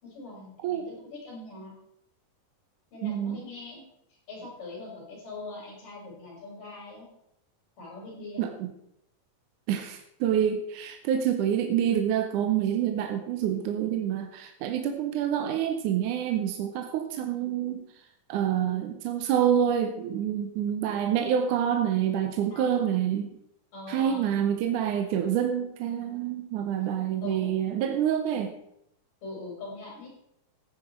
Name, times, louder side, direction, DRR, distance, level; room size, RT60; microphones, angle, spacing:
voice 1, 0.0-1.7 2.9-3.8 4.3-7.1 7.8-8.5 22.5-23.0 23.7-24.3 27.2-27.5 29.2-30.1, left 3 dB, 75° left, -3 dB, 6.7 m, -42 dB
voice 2, 3.0-3.4 8.4-8.5 9.7-17.9 18.3-23.3 23.9-28.5, right 9 dB, 75° right, 6 dB, 2.3 m, -27 dB
14.5 x 9.7 x 4.5 m, 0.76 s
omnidirectional pair, 3.8 m